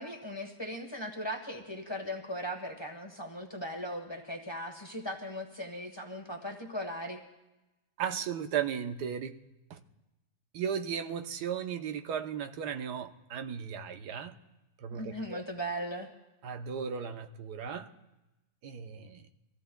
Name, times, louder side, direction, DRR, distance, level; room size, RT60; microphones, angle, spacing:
voice 1, 0.0-7.2 14.9-16.1, equal, 20° left, 3 dB, 1.2 m, -38 dB
voice 2, 8.0-9.4 9.7-9.8 10.5-14.4 14.8-15.4 16.4-17.9 18.6-19.2, right 8 dB, 90° right, 7 dB, 1.4 m, -36 dB
24.5 x 15.5 x 2.3 m, 1.0 s
omnidirectional pair, 1.7 m